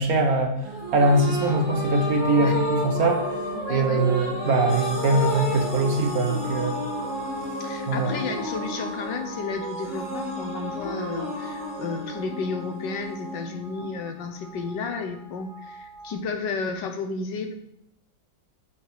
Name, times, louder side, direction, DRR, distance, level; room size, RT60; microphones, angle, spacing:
voice 1, 0.0-3.3 3.7-6.8 7.9-8.1, right 2 dB, 55° right, 4 dB, 1.2 m, -22 dB
sound 1, 0.6-14.2, equal, 25° left, 1.9 m, -31 dB
voice 2, 3.5-4.0 7.6-17.5, left 4 dB, 70° left, 5 dB, 1.5 m, -32 dB
sound 2, 4.7-16.1, equal, 45° left, 1.9 m, -41 dB
7.0 x 5.8 x 4.7 m, 0.79 s
omnidirectional pair, 2.1 m